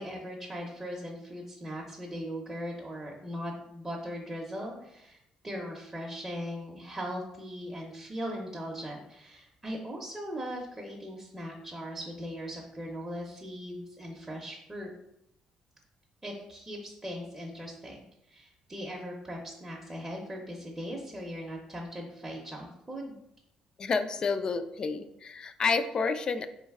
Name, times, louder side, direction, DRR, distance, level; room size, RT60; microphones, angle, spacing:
voice 1, 0.0-5.2 5.4-14.9 16.2-18.0 18.3-23.2, equal, 15° right, -2 dB, 0.6 m, -39 dB
voice 2, 23.8-26.5, left 4 dB, 40° left, 11 dB, 0.3 m, -29 dB
3.8 x 3.1 x 3.5 m, 0.81 s
cardioid pair, 110°, 2 cm